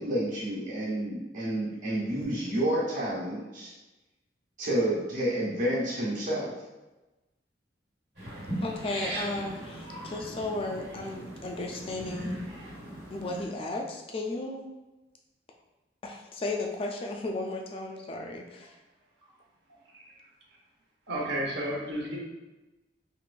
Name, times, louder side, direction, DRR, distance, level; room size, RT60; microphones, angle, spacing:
voice 1, 0.0-3.7 4.6-6.5, right 1 dB, 45° right, -6 dB, 1.2 m, -29 dB
sound 1, 8.2-13.4, right 1 dB, 70° right, 1.3 m, -39 dB
voice 2, 8.6-12.4 13.1-14.7 16.0-18.7, left 2 dB, 30° left, 1 dB, 0.3 m, -34 dB
voice 3, 21.1-22.2, right 1 dB, 85° right, -2 dB, 0.9 m, -32 dB
3.7 x 2.9 x 2.4 m, 1.1 s
head